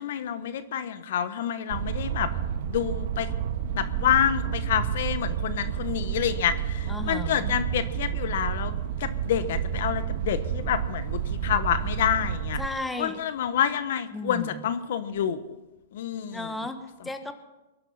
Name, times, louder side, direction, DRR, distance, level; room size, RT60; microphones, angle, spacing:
voice 1, 0.0-2.3 2.7-3.3 3.7-8.7 9.0-12.6 13.0-15.6 15.9-16.6, left 9 dB, 65° left, 12 dB, 1.1 m, -28 dB
sound 1, 1.7-12.7, right 9 dB, 65° right, 1.5 m, -30 dB
voice 2, 6.9-7.5 12.6-13.2 14.1-14.6 16.3-17.3, left 2 dB, 5° left, 8 dB, 1.3 m, -34 dB
22.0 x 11.5 x 5.6 m, 1.1 s
hypercardioid pair, 135°, 0 cm